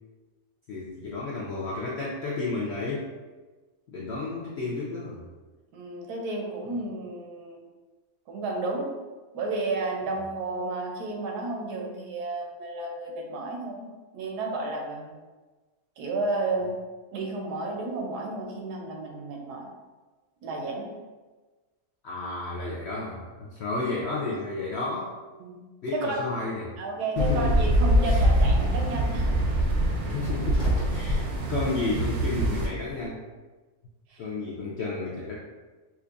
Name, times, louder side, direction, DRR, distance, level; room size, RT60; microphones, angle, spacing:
voice 1, 0.7-3.1 3.9-5.2 22.0-25.1 25.8-26.7 27.2-27.6 28.0-28.2 30.0-33.2 34.2-35.4, left 3 dB, 80° left, -4 dB, 0.6 m, -32 dB
voice 2, 5.7-7.6 8.3-8.9 9.3-13.9 14.1-15.2 16.0-16.8 17.1-19.7 20.4-20.9 25.4-25.6 25.9-26.2 26.8-29.3 34.1-34.2, right 2 dB, 90° right, 1 dB, 1.2 m, -32 dB
sound 1, 27.2-32.7, right 1 dB, 60° right, 0.8 m, -24 dB
sound 2, 27.4-33.1, left 3 dB, 50° left, 1.0 m, -39 dB
4.4 x 2.4 x 2.4 m, 1.3 s
omnidirectional pair, 1.7 m